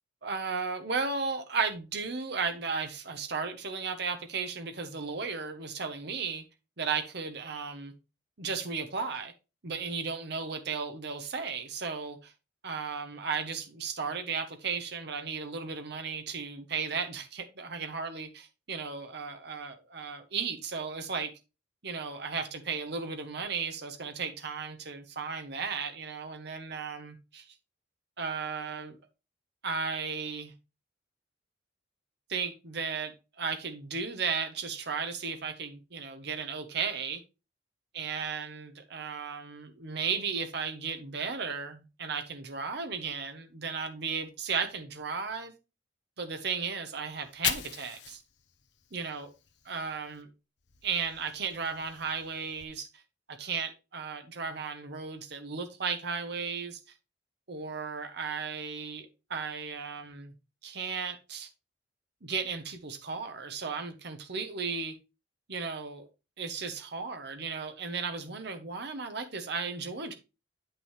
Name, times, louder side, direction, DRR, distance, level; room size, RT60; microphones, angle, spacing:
voice 1, 0.2-6.4 6.8-7.9 8.4-9.3 9.6-12.3 12.6-21.3 21.8-27.4 28.2-29.0 29.6-30.5 32.3-37.2 37.9-45.5 46.2-48.2 48.9-49.3 49.7-50.3 50.8-52.9 53.3-56.8 57.5-60.3 60.6-61.5 62.2-64.9 65.5-66.0 66.4-70.2, right 5 dB, 65° right, 1.1 m, -35 dB
Fire, 47.1-50.2 50.6-52.6, left 9 dB, 70° left, 1.0 m, -40 dB
9.0 x 5.9 x 3.3 m
head